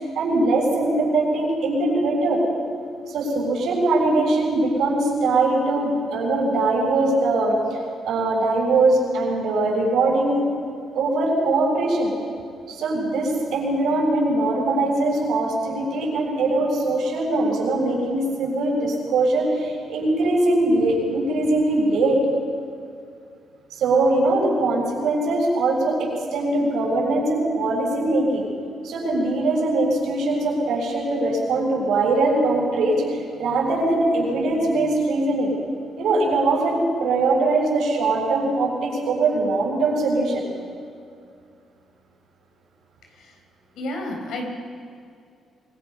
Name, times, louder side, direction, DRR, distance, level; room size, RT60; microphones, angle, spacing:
voice 1, 0.1-2.4 3.1-7.6 8.1-10.4 10.9-12.1 12.7-22.2 23.7-28.5 28.8-35.5 36.0-40.4, right 2 dB, 80° right, -2 dB, 7.3 m, -21 dB
voice 2, 43.8-44.5, left 1 dB, 80° left, 2 dB, 4.6 m, -30 dB
25.5 x 21.5 x 5.7 m, 2.4 s
cardioid pair, 125°, 0 cm